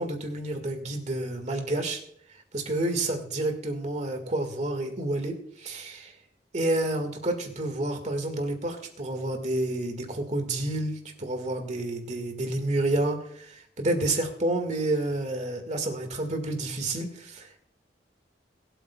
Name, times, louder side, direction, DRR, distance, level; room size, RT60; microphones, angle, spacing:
voice 1, 0.0-2.0 2.5-6.2 6.5-17.7, right 2 dB, 40° right, 5 dB, 1.8 m, -29 dB
22.0 x 8.2 x 2.3 m, 0.66 s
head